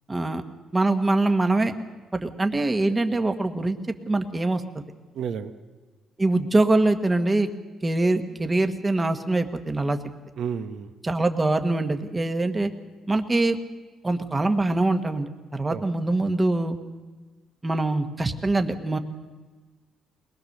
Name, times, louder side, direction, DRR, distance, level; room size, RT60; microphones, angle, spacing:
voice 1, 0.1-0.4 0.7-1.7 2.1-3.8 4.1-4.6 6.2-7.5 7.8-10.0 11.0-12.7 13.1-13.6 14.0-16.8 17.6-19.0, right 2 dB, 15° right, 7 dB, 1.3 m, -23 dB
voice 2, 5.1-5.5 10.4-10.9 15.7-15.8, right 7 dB, 65° right, 8 dB, 1.2 m, -31 dB
22.0 x 20.5 x 6.6 m, 1.3 s
cardioid pair, 135°, 0 cm